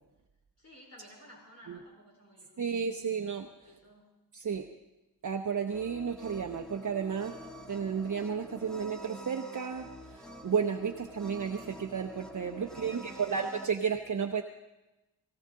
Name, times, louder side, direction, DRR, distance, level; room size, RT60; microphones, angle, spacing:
voice 1, 0.6-3.1 3.6-4.1 12.6-13.5, equal, 40° left, -3 dB, 4.1 m, -55 dB
voice 2, 2.6-3.5 4.3-4.7 5.2-7.3 7.7-14.4, right 6 dB, 50° right, 4 dB, 0.8 m, -33 dB
sound 1, 5.7-13.7, left 1 dB, ahead, 1.0 m, -47 dB
18.5 x 18.0 x 3.8 m, 1.0 s
wide cardioid pair, 105°, 40 cm